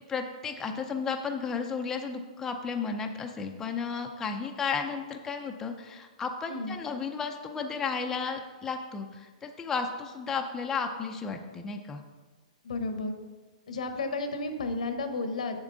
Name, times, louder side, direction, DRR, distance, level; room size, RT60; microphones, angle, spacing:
voice 1, 0.1-12.0, left 5 dB, 10° left, 4 dB, 0.4 m, -33 dB
voice 2, 12.6-13.1 13.7-15.6, left 3 dB, 85° left, 7 dB, 1.0 m, -32 dB
7.2 x 7.1 x 3.9 m, 1.4 s
hypercardioid pair, 150°, 4 cm